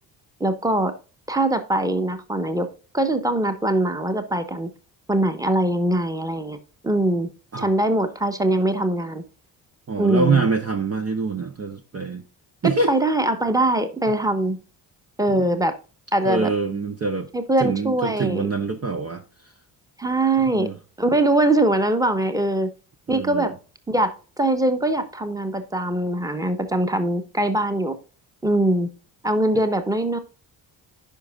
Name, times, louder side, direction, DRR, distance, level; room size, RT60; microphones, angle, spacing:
voice 1, 0.4-0.9 1.3-2.7 2.9-4.7 5.1-6.6 6.8-7.3 7.6-9.2 10.0-10.4 12.6-14.6 15.2-15.7 16.1-16.5 17.3-18.5 20.0-20.7 21.0-22.7 23.1-23.5 23.9-24.1 24.4-27.9 28.4-28.9 29.2-30.2, right 1 dB, 5° right, 1.3 m, -22 dB
voice 2, 9.9-12.2 12.6-12.9 15.3-15.6 16.2-17.3 17.6-19.2 20.4-20.8 23.1-23.5, right 4 dB, 30° right, 0.9 m, -25 dB
10.5 x 5.1 x 2.4 m
supercardioid pair, 55°, 49 cm